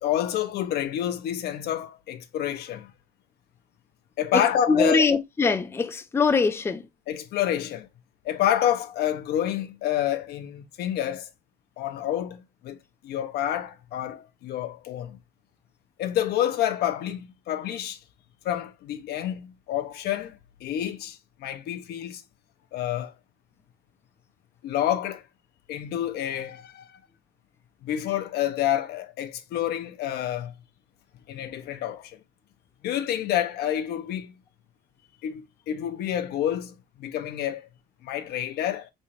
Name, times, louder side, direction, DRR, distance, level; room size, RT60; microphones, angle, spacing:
voice 1, 0.0-2.9 4.2-5.0 7.1-7.9 8.2-11.3 11.8-12.8 13.0-15.2 16.0-18.0 18.4-22.2 22.7-23.1 24.6-25.2 25.7-26.9 27.8-30.5 31.3-32.2 32.8-34.4 35.2-37.7 38.0-38.9, left 11 dB, 70° left, 0.6 m, -28 dB
voice 2, 4.3-6.8, left 4 dB, 15° left, 0.4 m, -23 dB
3.6 x 3.2 x 2.8 m
cardioid pair, 110°, 17 cm